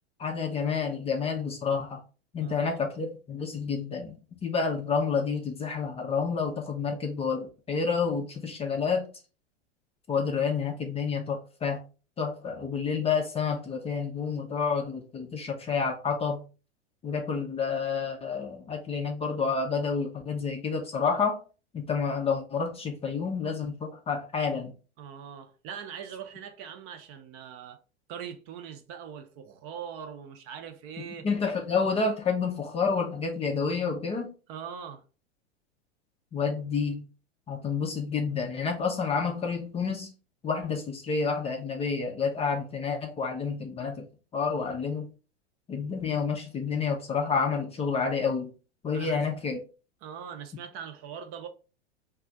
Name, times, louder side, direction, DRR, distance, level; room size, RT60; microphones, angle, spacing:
voice 1, 0.2-2.0 2.3-9.1 10.1-11.8 12.2-16.4 17.0-21.4 21.7-24.7 31.1-34.3 36.3-37.1 37.5-40.1 40.4-44.0 44.3-45.1 45.7-48.5 48.8-49.6, left 5 dB, 20° left, 0.5 m, -29 dB
voice 2, 2.4-2.7 25.0-27.8 28.1-31.3 34.5-35.0 48.9-49.3 50.0-51.5, right 8 dB, 40° right, 0.6 m, -41 dB
2.4 x 2.3 x 3.9 m
hypercardioid pair, 100°, 34 cm